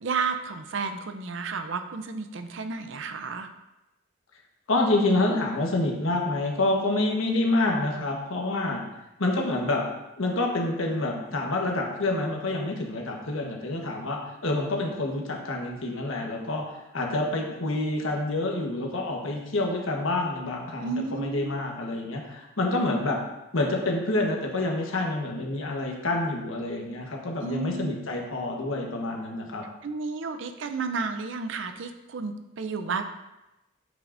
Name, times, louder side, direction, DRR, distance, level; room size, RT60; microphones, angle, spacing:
voice 1, 0.0-3.5 20.8-21.6 27.4-28.0 29.8-33.0, right 4 dB, 70° right, 8 dB, 0.5 m, -32 dB
voice 2, 4.7-8.8 9.2-9.8 10.2-16.6 16.9-23.2 23.5-29.6, left 2 dB, 85° left, 1 dB, 1.2 m, -27 dB
7.4 x 6.0 x 2.6 m, 0.97 s
head